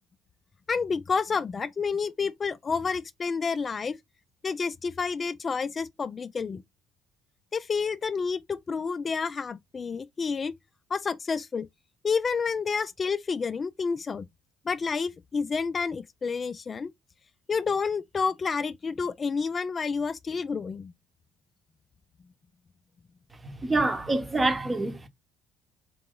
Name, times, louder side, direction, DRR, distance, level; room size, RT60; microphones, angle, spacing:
voice 1, 0.7-4.0 4.4-6.6 7.5-10.5 10.9-11.7 12.0-14.3 14.7-16.9 17.5-20.9, left 5 dB, 35° left, 0.3 m, -29 dB
voice 2, 23.4-25.1, right 2 dB, 20° right, 0.9 m, -26 dB
3.8 x 2.9 x 3.7 m
supercardioid pair, 75°, 0 cm